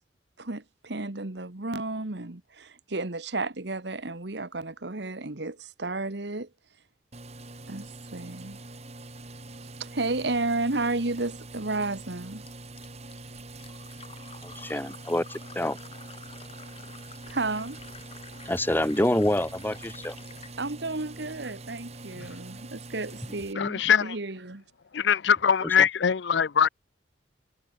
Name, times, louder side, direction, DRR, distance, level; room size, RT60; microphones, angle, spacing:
voice 1, 0.4-6.5 7.7-8.6 9.6-12.4 17.3-17.8 20.6-24.6, right 2 dB, 65° right, 1.5 m, -32 dB
sound 1, 7.1-23.5, right 2 dB, 35° right, 2.5 m, -44 dB
Fill (with liquid), 12.5-20.6, left 5 dB, 30° left, 5.4 m, -50 dB
voice 2, 14.4-15.8 18.4-20.2 25.6-25.7, left 1 dB, 10° left, 1.2 m, -27 dB
voice 3, 23.6-24.2 24.9-26.7, left 7 dB, 70° left, 0.5 m, -22 dB
head